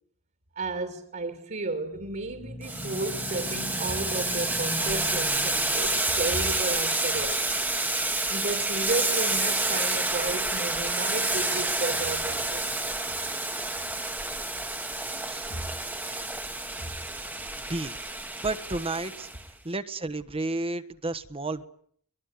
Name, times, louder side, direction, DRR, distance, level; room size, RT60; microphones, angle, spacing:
voice 1, 0.5-7.4 8.3-12.8 15.5-15.7 16.8-16.9, right 2 dB, 45° right, 2.7 m, -33 dB
sound 1, 1.9-6.3, left 1 dB, 25° left, 1.1 m, -40 dB
Boiling, 2.6-19.4, right 2 dB, 10° right, 1.4 m, -29 dB
voice 2, 15.2-15.5 17.6-18.0 18.4-19.3 19.6-21.6, right 2 dB, 25° right, 1.3 m, -32 dB
23.5 x 21.5 x 9.8 m
head